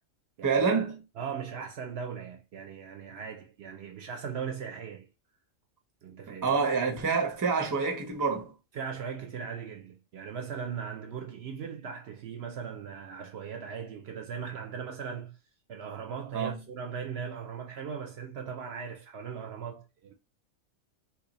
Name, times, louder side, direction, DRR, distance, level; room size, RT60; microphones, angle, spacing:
voice 1, 0.4-1.0 6.3-8.4 16.3-16.6, right 5 dB, 20° right, 0.5 m, -27 dB
voice 2, 1.2-5.1 6.0-6.6 8.7-15.4 15.7-20.1, right 7 dB, 65° right, 0.8 m, -39 dB
2.8 x 2.4 x 3.9 m
omnidirectional pair, 1.3 m